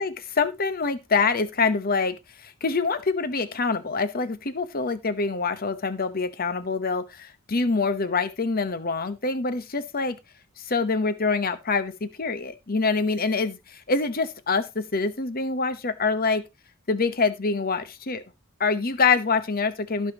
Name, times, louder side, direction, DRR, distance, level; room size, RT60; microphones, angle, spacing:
voice 1, 0.0-10.2 10.6-16.4 16.9-18.2 18.6-20.1, left 4 dB, 45° left, 1.0 m, -25 dB
17.0 x 5.7 x 2.9 m
head